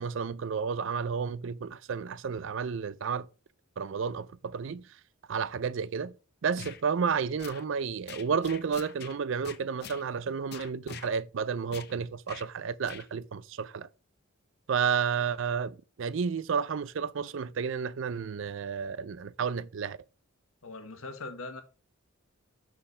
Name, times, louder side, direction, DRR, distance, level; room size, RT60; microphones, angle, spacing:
voice 1, 0.0-3.3 3.8-4.9 5.3-6.2 6.4-13.9 14.7-20.0, right 6 dB, 65° right, 0.4 m, -31 dB
sound 1, 6.6-6.8 7.4-7.6 8.1-9.2 9.4-10.0 10.5-11.1 11.7-11.9 12.3-12.5 12.8-13.1, left 7 dB, 50° left, 0.5 m, -44 dB
voice 2, 20.6-21.6, left 3 dB, 80° left, 1.1 m, -41 dB
5.8 x 4.2 x 4.9 m
head